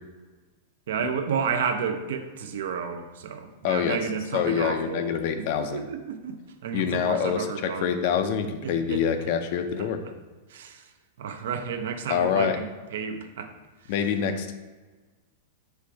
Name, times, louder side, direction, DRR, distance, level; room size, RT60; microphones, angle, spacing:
voice 1, 0.9-5.1 5.6-6.4 6.6-8.0 8.6-9.0 9.8-9.9 10.5-10.9 11.2-13.5 13.8-13.9, right 6 dB, 75° right, 7 dB, 0.5 m, -31 dB
voice 2, 3.6-4.0 4.3-5.8 6.7-10.0 12.1-12.6 13.9-14.5, left 8 dB, 50° left, 8 dB, 0.4 m, -26 dB
4.5 x 2.5 x 4.5 m, 1.3 s
supercardioid pair, 155°, 0 cm